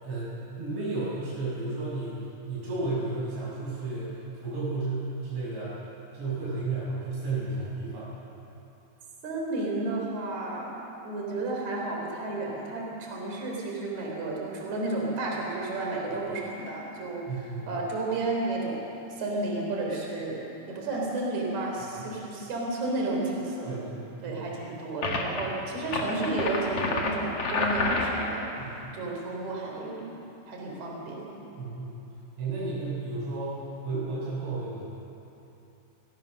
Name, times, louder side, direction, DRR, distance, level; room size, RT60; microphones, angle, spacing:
voice 1, 0.0-2.2 2.5-5.7 6.1-8.1 17.3-17.7 22.0-22.1 23.7-24.5 25.3-25.8 28.6-28.9 31.6-32.0 32.4-34.9, right 3 dB, 80° right, -7 dB, 8.8 m, -33 dB
voice 2, 9.2-10.7 11.0-17.3 17.7-18.8 19.2-23.8 24.2-28.5 28.9-30.2 30.5-31.3, right 2 dB, 40° right, -1 dB, 4.6 m, -32 dB
sound 1, 25.0-25.4 25.8-28.4, left 3 dB, 45° left, 2.3 m, -29 dB
27.5 x 17.0 x 6.6 m, 3.0 s
omnidirectional pair, 5.2 m